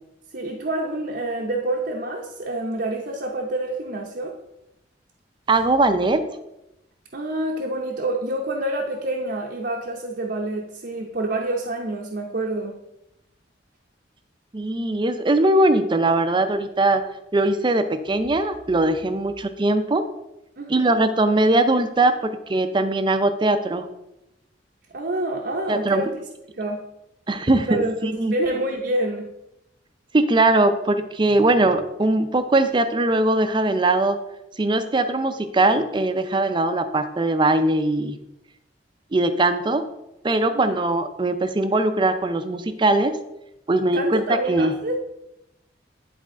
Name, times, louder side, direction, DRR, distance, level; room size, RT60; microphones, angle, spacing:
voice 1, 0.3-4.3 7.1-12.8 20.6-20.9 24.9-26.1 26.6-26.8 27.7-29.3 40.5-40.8 43.9-45.0, right 1 dB, 60° right, 0 dB, 0.7 m, -27 dB
voice 2, 5.5-6.2 14.5-17.0 17.3-20.0 20.7-23.9 25.7-26.1 27.3-28.3 30.1-34.2 34.6-38.2 39.1-39.9 40.2-43.1 43.7-44.7, right 2 dB, 25° right, 9 dB, 0.5 m, -20 dB
10.5 x 4.2 x 3.7 m, 0.89 s
head